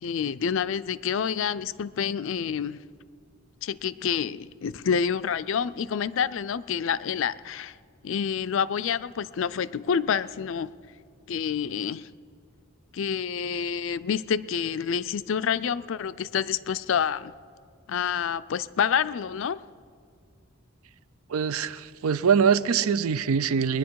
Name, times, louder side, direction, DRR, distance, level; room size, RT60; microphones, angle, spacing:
voice 1, 0.0-2.8 3.6-7.7 8.0-10.7 11.3-12.1 12.9-17.3 17.9-19.6, left 7 dB, 60° left, 0.4 m, -28 dB
voice 2, 21.3-23.8, right 6 dB, 80° right, 0.5 m, -23 dB
21.5 x 10.5 x 4.7 m
head